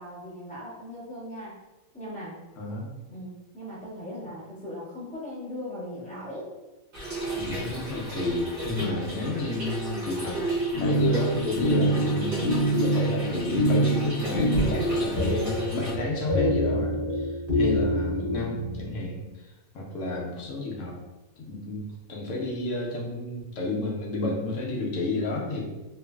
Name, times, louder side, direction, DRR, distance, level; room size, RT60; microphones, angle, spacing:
voice 1, 0.0-1.6 1.9-2.4 3.1-6.5, equal, 5° left, -9 dB, 0.7 m, -39 dB
voice 2, 2.6-2.9 7.3-10.4 10.8-20.9 21.4-25.6, left 2 dB, 65° left, -2 dB, 0.9 m, -31 dB
Trickle dribble / Fill (with liquid), 6.9-15.9, right 1 dB, 40° right, 1.0 m, -33 dB
sound 1, 10.7-19.0, equal, 45° left, 1.1 m, -26 dB
2.9 x 2.5 x 2.2 m, 1.1 s
omnidirectional pair, 1.5 m